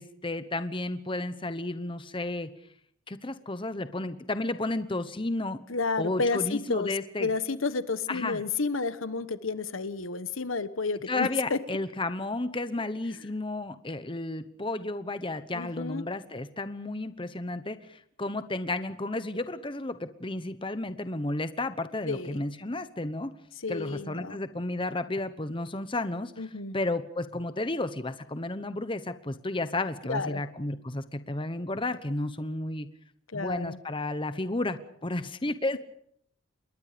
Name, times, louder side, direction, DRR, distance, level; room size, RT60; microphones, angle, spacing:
voice 1, 0.0-2.5 3.1-5.6 6.0-7.3 8.1-8.4 11.1-23.3 23.7-26.3 26.7-32.9 33.3-35.8, left 2 dB, 25° left, 11 dB, 1.0 m, -32 dB
voice 2, 5.7-6.9 7.2-11.6 15.5-16.0 22.0-22.4 23.6-24.4 26.4-26.8 30.1-30.4 33.3-33.8, left 4 dB, 75° left, 13 dB, 1.3 m, -31 dB
27.5 x 22.0 x 5.1 m, 0.69 s
head